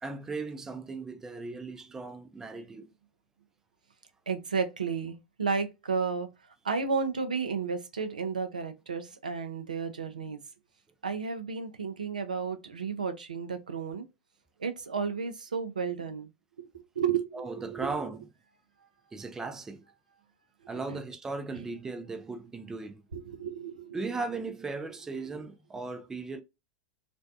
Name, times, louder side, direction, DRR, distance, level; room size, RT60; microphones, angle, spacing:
voice 1, 0.0-2.9 17.3-18.3 19.1-19.8 20.7-23.0 23.9-26.4, right 3 dB, 10° right, 0.3 m, -37 dB
voice 2, 4.3-6.3 6.6-10.4 11.0-14.0 14.6-16.3 17.0-17.9 20.9-21.0 23.1-24.2, right 5 dB, 80° right, 0.4 m, -32 dB
2.5 x 2.1 x 2.3 m
figure-of-eight pair, 95°, 4 cm